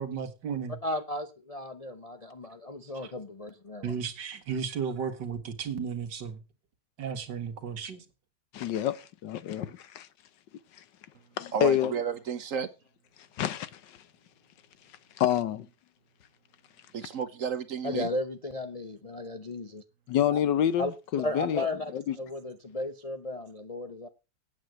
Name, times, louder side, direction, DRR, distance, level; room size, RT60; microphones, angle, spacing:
voice 1, 0.0-0.8 2.9-3.1 3.8-6.4 7.0-8.0, right 6 dB, 75° right, 2.1 m, -34 dB
voice 2, 0.8-4.0 17.8-19.8 20.3-20.4 20.8-21.9 22.2-24.1, left 1 dB, 35° left, 0.5 m, -35 dB
voice 3, 8.5-10.1 11.4-11.9 13.4-14.0 15.2-15.7 20.1-21.7 21.9-22.1, left 10 dB, 80° left, 1.5 m, -28 dB
voice 4, 11.5-12.7 16.9-18.1, right 7 dB, 55° right, 1.1 m, -32 dB
8.9 x 7.4 x 7.8 m
omnidirectional pair, 1.9 m